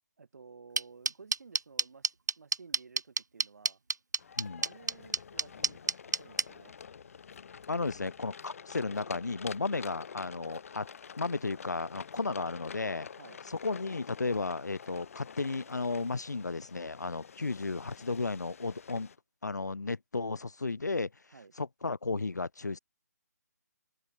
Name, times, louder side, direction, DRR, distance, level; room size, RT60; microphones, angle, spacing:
voice 1, 0.2-3.8 4.5-6.8 10.3-10.6 13.2-13.4 21.3-21.5, right 5 dB, 65° right, 4.0 m, -54 dB
sound 1, 0.8-6.4, right 3 dB, 80° right, 0.9 m, -28 dB
sound 2, 4.2-19.2, left 6 dB, 55° left, 2.8 m, -48 dB
voice 2, 7.7-10.9 11.2-13.1 13.5-19.1 19.4-21.1 21.6-22.8, left 3 dB, 80° left, 1.2 m, -34 dB
open air
figure-of-eight pair, 145°, 9 cm